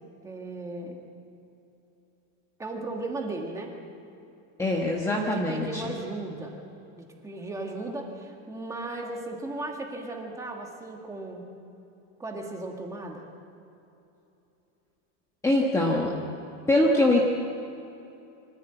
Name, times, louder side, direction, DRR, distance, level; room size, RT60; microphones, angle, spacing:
voice 1, 0.2-1.0 2.6-3.7 5.1-6.6 7.0-11.5 12.2-13.3, right 2 dB, 10° right, 1 dB, 1.8 m, -36 dB
voice 2, 4.6-5.8 15.4-16.1 16.7-17.2, left 1 dB, 10° left, -2 dB, 1.2 m, -23 dB
24.5 x 14.5 x 9.1 m, 2.9 s
supercardioid pair, 180°, 39 cm